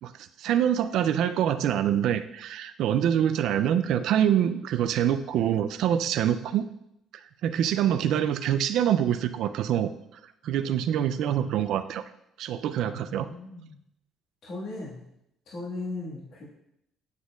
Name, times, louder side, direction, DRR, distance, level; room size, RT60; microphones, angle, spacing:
voice 1, 0.0-6.6 7.4-9.9 10.4-12.0 12.4-13.3, right 10 dB, 75° right, 11 dB, 0.3 m, -25 dB
voice 2, 12.8-13.8 14.4-15.0 15.5-16.4, left 2 dB, 60° left, -7 dB, 1.7 m, -37 dB
9.4 x 4.3 x 2.4 m, 0.80 s
cardioid pair, 90°, 0 cm